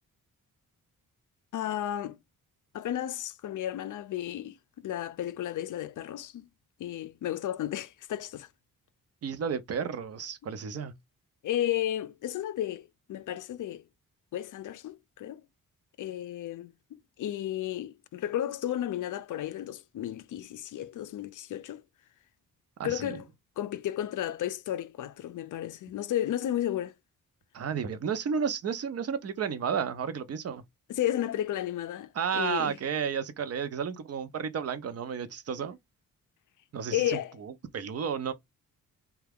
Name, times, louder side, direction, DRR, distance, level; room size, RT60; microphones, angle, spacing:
voice 1, 1.5-2.2 2.7-6.5 6.8-8.5 11.4-13.8 14.3-15.4 16.0-21.8 22.8-23.2 23.6-26.9 30.9-32.8 36.9-37.3, left 12 dB, 60° left, 0.5 m, -33 dB
voice 2, 9.2-10.9 22.8-23.2 27.5-30.6 32.1-35.8 36.7-38.3, right 7 dB, 45° right, 0.6 m, -32 dB
3.3 x 2.3 x 3.4 m
wide cardioid pair, 145°, 34 cm